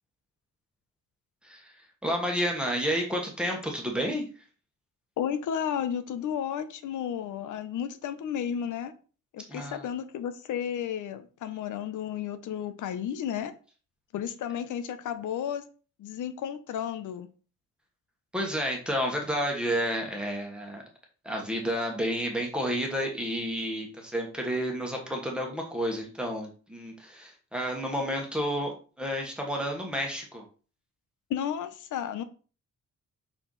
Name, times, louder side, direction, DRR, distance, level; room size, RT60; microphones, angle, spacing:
voice 1, 2.0-4.3 9.5-9.9 18.3-20.8 21.2-30.4, equal, 5° right, 0 dB, 1.3 m, -30 dB
voice 2, 5.2-8.9 9.3-13.5 14.1-15.6 16.0-17.3 31.3-32.2, left 9 dB, 85° left, 11 dB, 0.8 m, -33 dB
6.0 x 4.5 x 3.9 m, 0.37 s
wide cardioid pair, 170°, 30 cm